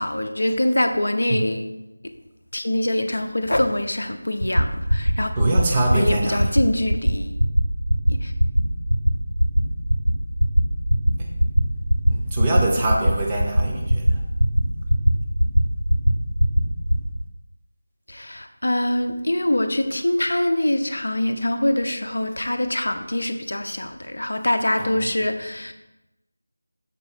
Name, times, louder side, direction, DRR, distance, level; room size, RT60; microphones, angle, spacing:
voice 1, 0.0-1.6 2.5-5.3 5.9-7.3 8.2-8.3 18.1-25.7, left 1 dB, 60° left, 7 dB, 0.6 m, -24 dB
sound 1, 4.4-4.6 4.9-5.1 5.4-5.6 5.9-6.1 6.4-6.6 6.9-7.1 7.4-7.6 7.9-8.1 8.4-8.6 8.9-9.1 9.4-9.6 9.9-10.1 10.4-10.6 10.9-11.1 11.4-11.6 11.9-12.1 12.4-12.6 12.9-13.1 13.4-13.6 13.9-14.1 14.4-14.6 14.9-15.1 15.4-15.6 15.9-16.1 16.4-16.6 16.9-17.1, equal, 85° right, 1.3 m, -17 dB
voice 2, 5.3-6.6 11.2-11.3 12.1-14.2 24.8-25.2, right 2 dB, 15° right, -1 dB, 0.7 m, -24 dB
6.9 x 4.7 x 4.3 m, 0.95 s
figure-of-eight pair, 165°, 0 cm